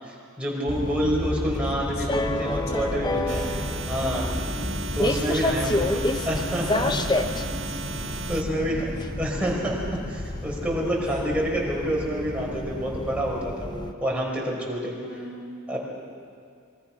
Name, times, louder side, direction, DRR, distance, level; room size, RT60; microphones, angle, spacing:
voice 1, 0.0-3.5 3.9-4.3 4.9-7.2 8.3-8.9 9.2-9.8 10.1-15.0 15.7-15.8, equal, 5° right, -4 dB, 4.9 m, -28 dB
sound 1, 0.7-13.9, left 1 dB, 20° left, 0.7 m, -29 dB
voice 2, 1.7-4.0 5.8-7.8 8.5-9.0 9.4-9.5 11.0-11.2 15.0-15.7, left 1 dB, 65° left, 2 dB, 3.7 m, -43 dB
sound 2, 3.3-8.4, right 5 dB, 60° right, 1.4 m, -36 dB
26.5 x 22.0 x 5.9 m, 2.3 s
head